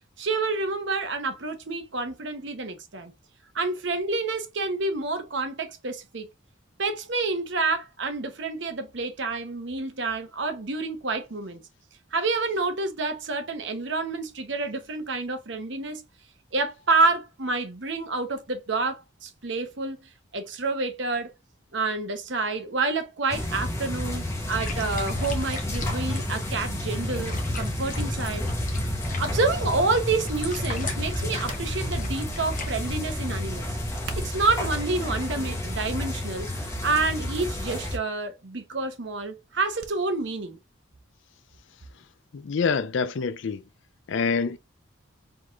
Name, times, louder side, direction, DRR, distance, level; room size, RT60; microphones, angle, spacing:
voice 1, 0.2-3.1 3.5-6.3 6.8-11.6 12.1-16.0 16.5-20.0 20.3-21.3 21.7-28.5 29.2-33.8 34.2-40.6, right 3 dB, 60° right, 0.9 m, -28 dB
sound 1, 23.3-38.0, left 1 dB, 15° left, 1.0 m, -30 dB
sound 2, 24.5-32.9, left 3 dB, 40° left, 1.1 m, -40 dB
sound 3, 34.0-34.6 35.4-35.8 36.2-36.3 37.3-37.5 37.8-37.9 39.8-40.0 40.3-40.4, right 3 dB, 90° right, 0.8 m, -41 dB
voice 2, 42.3-43.6 44.1-44.6, left 5 dB, 65° left, 0.4 m, -26 dB
4.7 x 3.8 x 2.5 m
head